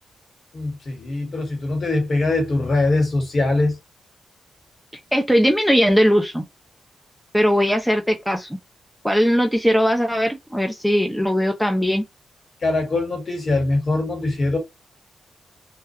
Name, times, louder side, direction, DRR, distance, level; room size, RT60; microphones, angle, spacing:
voice 1, 0.5-3.7 12.6-14.6, left 2 dB, 50° left, 1.3 m, -22 dB
voice 2, 5.1-6.4 7.3-8.5 9.0-12.0, equal, ahead, 0.4 m, -19 dB
2.3 x 2.2 x 2.6 m
cardioid pair, 95°, 0 cm